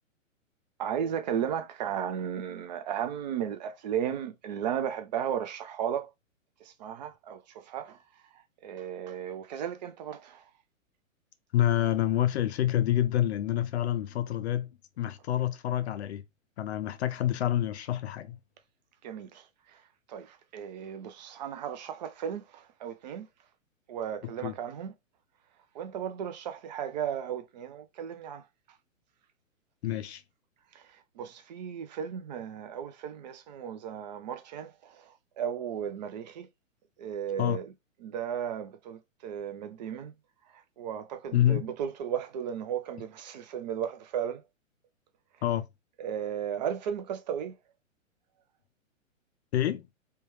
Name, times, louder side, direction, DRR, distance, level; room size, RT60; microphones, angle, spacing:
voice 1, 0.8-6.1 6.6-8.0 8.3-10.5 19.0-19.8 20.1-23.3 23.9-24.9 25.7-28.4 30.7-36.5 37.0-37.7 38.0-40.1 40.5-44.4 46.0-47.5, right 9 dB, 35° right, 0.4 m, -35 dB
voice 2, 11.5-14.7 15.0-16.2 16.6-18.4 24.4-24.5 29.8-30.2 37.4-37.6 41.3-41.7 45.4-45.6 49.5-49.9, left 12 dB, 55° left, 0.5 m, -27 dB
3.3 x 2.2 x 3.1 m
hypercardioid pair, 130°, 40 cm